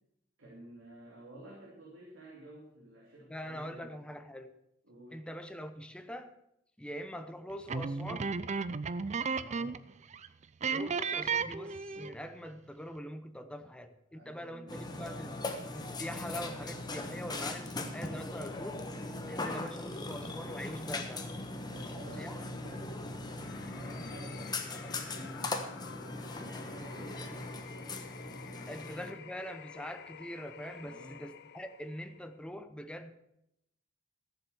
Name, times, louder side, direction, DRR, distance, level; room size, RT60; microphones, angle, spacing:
voice 1, 0.4-4.0 4.8-5.3 9.3-9.8 14.1-15.5 19.2-19.6 21.6-28.8 30.8-31.3, right 1 dB, 70° right, -4 dB, 2.9 m, -52 dB
voice 2, 3.3-4.5 5.1-6.3 6.8-8.3 10.6-15.4 15.7-18.9 19.3-21.3 22.2-22.4 28.7-33.1, equal, 5° left, 8 dB, 0.8 m, -43 dB
sound 1, 7.7-9.9 10.1-10.3 10.6-12.2, right 5 dB, 35° right, 0.4 m, -34 dB
Burping eructation, 14.7-29.1, left 2 dB, 20° left, 1.2 m, -40 dB
sound 2, 23.4-32.4, left 7 dB, 60° left, 0.6 m, -51 dB
14.0 x 7.3 x 7.0 m, 0.81 s
head